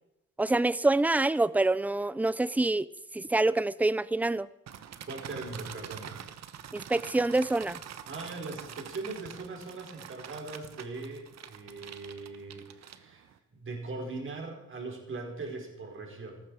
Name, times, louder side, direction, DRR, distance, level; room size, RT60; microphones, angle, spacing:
voice 1, 0.4-2.9 3.1-4.5 6.7-7.8, right 2 dB, 5° right, 18 dB, 0.5 m, -26 dB
sound 1, 4.7-13.4, right 9 dB, 60° right, 1.2 m, -45 dB
voice 2, 5.1-6.2 8.1-16.4, right 3 dB, 40° right, 1 dB, 4.8 m, -40 dB
18.5 x 14.0 x 4.9 m, 0.86 s
cardioid pair, 90°, 30 cm